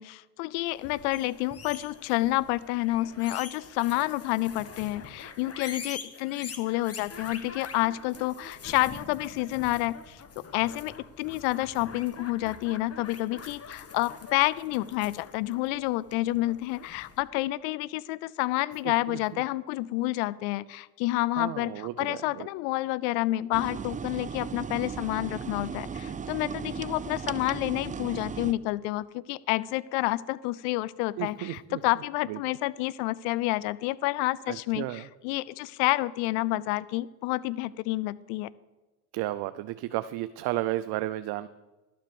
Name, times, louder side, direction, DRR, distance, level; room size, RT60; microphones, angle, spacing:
voice 1, 0.0-38.5, left 18 dB, 80° left, 20 dB, 0.5 m, -29 dB
sound 1, 0.7-17.2, left 5 dB, 35° left, 1.7 m, -45 dB
voice 2, 18.8-19.4 21.3-22.5 31.2-31.8 32.3-32.4 34.5-35.1 39.1-41.5, right 15 dB, 65° right, 12 dB, 0.6 m, -33 dB
sound 2, 23.5-28.5, right 6 dB, 20° right, 0.5 m, -36 dB
12.0 x 7.5 x 6.9 m, 1.1 s
supercardioid pair, 75°, 40 cm